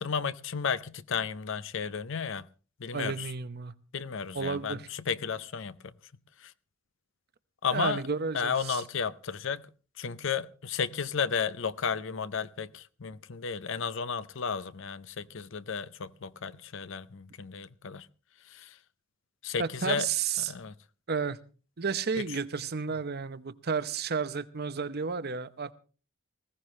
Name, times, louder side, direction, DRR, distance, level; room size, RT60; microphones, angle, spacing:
voice 1, 0.0-2.4 2.8-3.3 3.9-5.9 6.4-6.5 7.6-8.0 8.3-9.7 10.0-18.1 18.5-18.7 19.4-20.1 20.4-20.7 22.1-22.2, left 6 dB, 65° left, 0.6 m, -33 dB
voice 2, 2.9-3.7 4.3-4.8 7.7-8.8 19.6-20.5 21.1-21.4 21.8-25.7, right 5 dB, 50° right, 0.8 m, -32 dB
20.0 x 16.0 x 3.2 m
head